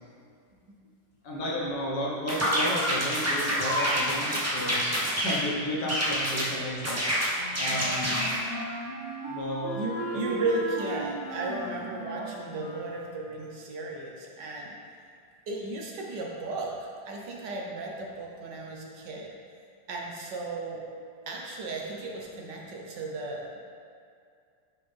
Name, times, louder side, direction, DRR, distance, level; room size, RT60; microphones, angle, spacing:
voice 1, 1.2-4.8 5.2-7.0 7.6-8.3 9.3-9.8 10.1-10.4, left 1 dB, 65° left, -5 dB, 1.8 m, -33 dB
sound 1, 2.3-5.4 5.9-6.5 6.8-8.4, equal, 20° right, 0.4 m, -27 dB
Wind instrument woodwind instrument, 7.3-13.0, right 1 dB, 40° left, 1.1 m, -37 dB
voice 2, 9.7-14.8 15.5-19.3 19.9-20.8 21.3-23.6, right 2 dB, 70° right, -1 dB, 1.4 m, -35 dB
9.6 x 3.7 x 3.3 m, 2.3 s
omnidirectional pair, 2.0 m